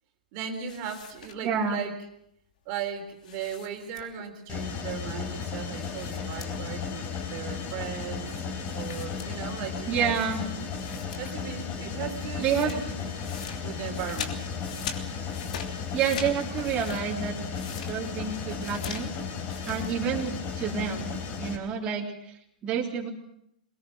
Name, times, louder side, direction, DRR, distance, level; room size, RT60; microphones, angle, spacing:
voice 1, 0.3-2.0 2.7-8.3 8.7-10.1 11.1-13.1 13.6-14.5, right 8 dB, 40° right, 5 dB, 3.7 m, -37 dB
sound 1, 0.7-1.7 3.2-4.4 5.8-6.9 7.1-7.2 8.6-9.8 10.3-10.4 10.7-11.5 11.8-19.9, left 7 dB, 60° left, 3.1 m, -42 dB
voice 2, 1.4-1.8 9.9-10.4 12.4-12.8 15.9-17.3 17.8-19.1 19.7-22.1 22.6-23.1, right 7 dB, 25° right, -2 dB, 3.5 m, -28 dB
Mechanisms, 4.5-21.6, left 6 dB, 30° left, 4.1 m, -35 dB
23.0 x 20.0 x 6.4 m, 0.77 s
hypercardioid pair, 115°, 5 cm